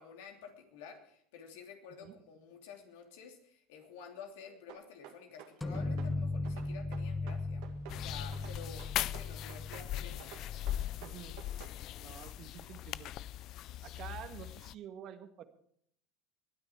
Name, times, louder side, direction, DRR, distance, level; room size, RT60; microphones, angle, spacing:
voice 1, 0.0-10.3, left 6 dB, 70° left, 4 dB, 3.0 m, -51 dB
sound 1, 4.7-6.1 6.4-8.0 8.3-9.9 10.2-11.8, right 11 dB, 65° right, 2.1 m, -51 dB
sound 2, 5.6-11.1, left 2 dB, 10° left, 0.9 m, -38 dB
sound 3, 7.9-14.7, left 13 dB, 50° left, 0.4 m, -40 dB
voice 2, 11.0-11.4 12.0-13.1 13.8-15.4, right 10 dB, 50° right, 8 dB, 1.7 m, -48 dB
21.5 x 9.7 x 4.6 m, 0.67 s
hypercardioid pair, 80°, 0 cm